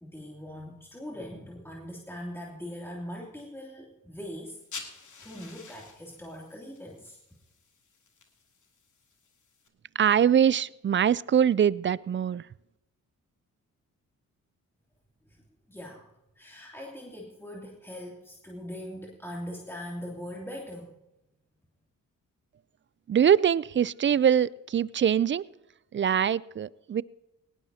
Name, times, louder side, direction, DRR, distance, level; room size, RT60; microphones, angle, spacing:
voice 1, 0.0-4.6 5.2-7.2 15.7-16.0 16.4-20.9, equal, 5° left, -3 dB, 2.9 m, -41 dB
sound 1, 4.5-9.7, left 4 dB, 55° left, 2.7 m, -48 dB
voice 2, 10.0-12.5 23.1-25.5 25.9-27.0, right 9 dB, 35° right, 21 dB, 0.4 m, -23 dB
18.5 x 18.0 x 2.8 m, 0.93 s
supercardioid pair, 55°, 36 cm